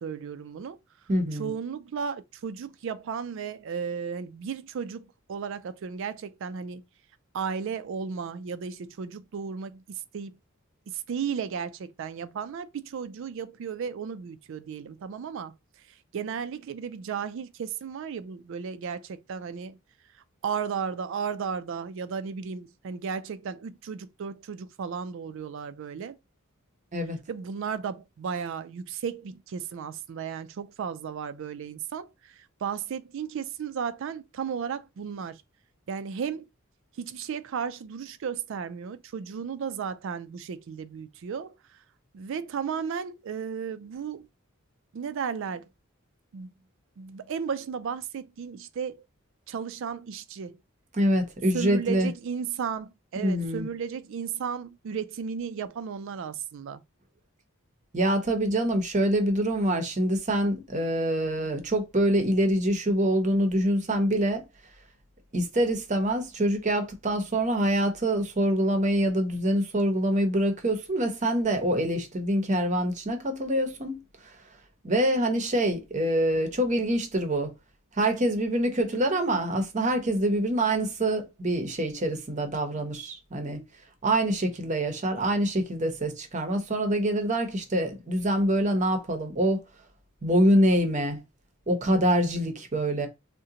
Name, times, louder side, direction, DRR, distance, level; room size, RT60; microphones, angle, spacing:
voice 1, 0.0-0.8 1.3-6.8 7.3-10.4 10.9-15.5 16.1-19.8 20.4-26.2 27.3-35.4 35.9-36.4 37.0-41.5 42.1-44.3 44.9-45.7 46.3-46.5 47.0-49.0 49.5-50.6 51.5-56.8, right 6 dB, 60° right, 0.3 m, -34 dB
voice 2, 1.1-1.5 26.9-27.2 50.9-52.1 53.2-53.7 57.9-64.4 65.3-74.0 74.8-77.5 78.0-83.6 84.0-89.6 90.2-91.2 91.7-93.1, right 1 dB, 35° right, 0.7 m, -25 dB
3.7 x 2.1 x 2.7 m
head